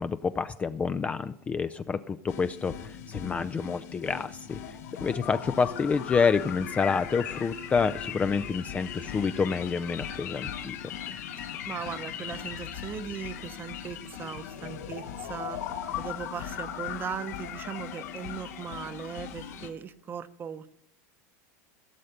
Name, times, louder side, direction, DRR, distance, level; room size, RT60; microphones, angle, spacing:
voice 1, 0.0-4.6 5.0-10.8, left 5 dB, 15° left, 11 dB, 0.4 m, -28 dB
sound 1, 2.3-19.7, left 9 dB, 85° left, 1.8 m, -38 dB
voice 2, 11.7-15.6 16.0-20.7, right 7 dB, 25° right, 12 dB, 0.8 m, -38 dB
16.5 x 6.6 x 5.1 m, 0.76 s
supercardioid pair, 135°, 9 cm